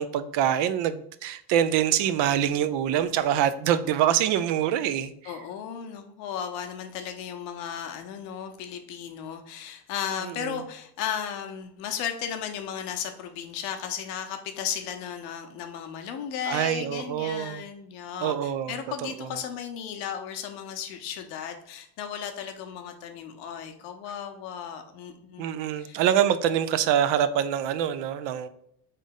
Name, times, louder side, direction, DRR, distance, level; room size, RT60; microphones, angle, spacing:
voice 1, 0.0-5.3 10.2-10.6 16.5-17.6 18.2-19.4 25.4-28.5, right 10 dB, 65° right, 11 dB, 0.5 m, -25 dB
voice 2, 5.2-25.5 25.8-26.0, left 8 dB, 80° left, 5 dB, 0.8 m, -35 dB
4.0 x 3.3 x 3.7 m, 0.72 s
supercardioid pair, 75°, 48 cm